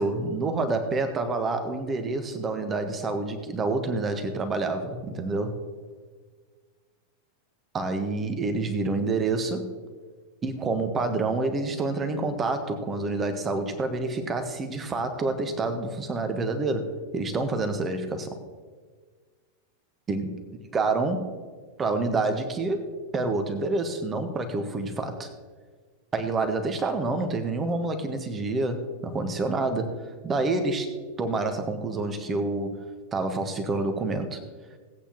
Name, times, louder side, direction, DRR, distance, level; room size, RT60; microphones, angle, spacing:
voice 1, 0.0-5.6 7.7-9.7 10.4-18.4 20.1-20.4 20.7-21.4 21.8-22.9 23.1-25.3 26.1-29.9 30.2-32.8 33.1-34.4, right 3 dB, 20° right, 7 dB, 1.4 m, -28 dB
18.5 x 8.4 x 3.0 m, 1.5 s
figure-of-eight pair, 90°, 0 cm